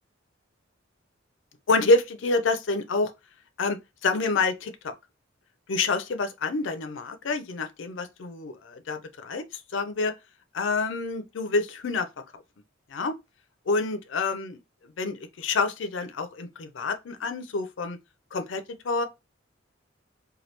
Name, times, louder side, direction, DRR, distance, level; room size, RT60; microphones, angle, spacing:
voice 1, 1.7-3.1 3.6-4.9 5.7-10.1 10.5-12.1 12.9-13.1 13.7-14.6 15.0-18.0 18.3-19.1, left 3 dB, 70° left, 0.5 m, -27 dB
3.1 x 2.3 x 2.9 m
head